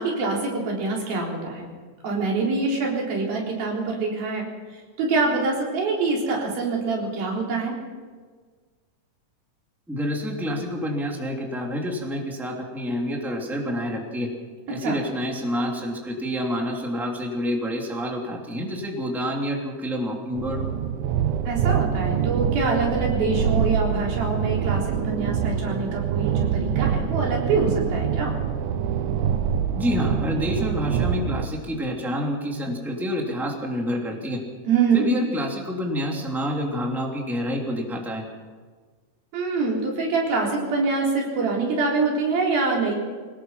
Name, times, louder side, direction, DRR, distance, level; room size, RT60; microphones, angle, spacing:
voice 1, 0.0-1.6 2.0-4.5 5.0-7.8 14.8-15.0 21.5-28.3 34.7-35.0 39.3-42.9, right 4 dB, 90° right, -2 dB, 5.7 m, -25 dB
voice 2, 9.9-14.3 14.7-20.6 29.7-34.4 34.9-38.2, equal, ahead, 0 dB, 2.6 m, -28 dB
sound 1, 20.3-31.5, right 8 dB, 70° right, 2.1 m, -25 dB
24.0 x 19.0 x 5.8 m, 1.5 s
omnidirectional pair, 4.1 m